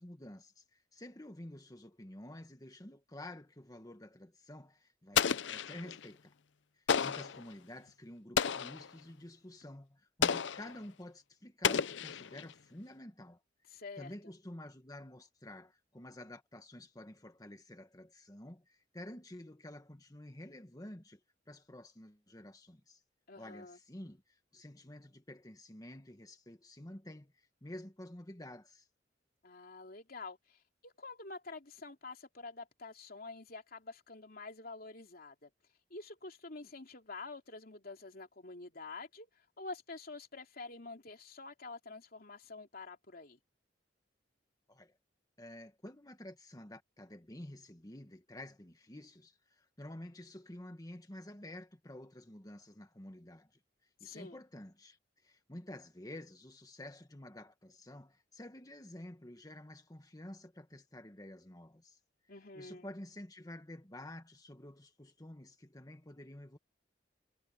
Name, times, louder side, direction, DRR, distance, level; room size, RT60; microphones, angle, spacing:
voice 1, 0.0-6.3 6.7-13.4 14.0-21.2 21.5-23.0 23.4-28.9 44.7-45.0 45.4-53.6 54.0-62.0 62.5-66.6, left 1 dB, 20° left, 1.5 m, -50 dB
Explosion, 5.1-6.1 6.9-7.4 8.4-8.9 10.2-10.8 11.6-12.5, left 7 dB, 90° left, 0.6 m, -32 dB
voice 2, 13.7-14.3 23.3-23.8 29.4-35.5 35.9-39.3 39.6-43.4 54.0-54.4 62.3-62.9, left 3 dB, 55° left, 3.2 m, -48 dB
head